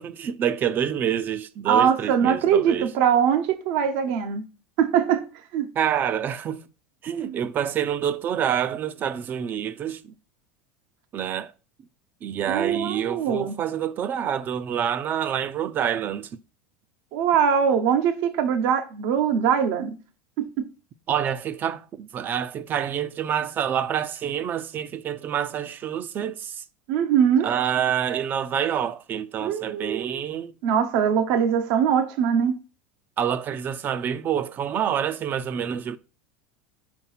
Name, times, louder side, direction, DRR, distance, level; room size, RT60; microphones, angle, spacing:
voice 1, 0.0-2.9 5.7-6.6 7.0-10.1 11.1-11.5 12.2-16.3 21.1-26.6 27.4-30.5 33.2-36.0, right 9 dB, 35° right, 0.5 m, -27 dB
voice 2, 1.7-4.4 4.8-5.2 5.5-5.7 7.2-7.4 12.5-13.5 17.1-19.9 20.4-20.7 26.9-27.5 29.4-30.2 30.6-32.6, right 8 dB, 65° right, 0.8 m, -22 dB
5.1 x 4.4 x 5.6 m
supercardioid pair, 120°, 6 cm